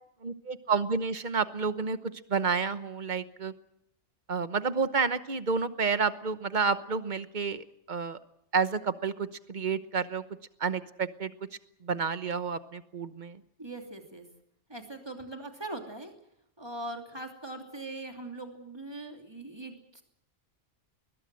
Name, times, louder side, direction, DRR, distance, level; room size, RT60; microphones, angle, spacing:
voice 1, 0.2-2.0 2.3-3.5 4.3-8.2 8.5-10.2 10.6-11.3 11.8-13.4, right 5 dB, 40° right, 12 dB, 1.2 m, -30 dB
voice 2, 13.6-14.2 14.7-16.1 16.6-20.0, right 2 dB, 20° right, 3 dB, 3.0 m, -41 dB
21.5 x 21.0 x 7.7 m, 0.75 s
omnidirectional pair, 1.2 m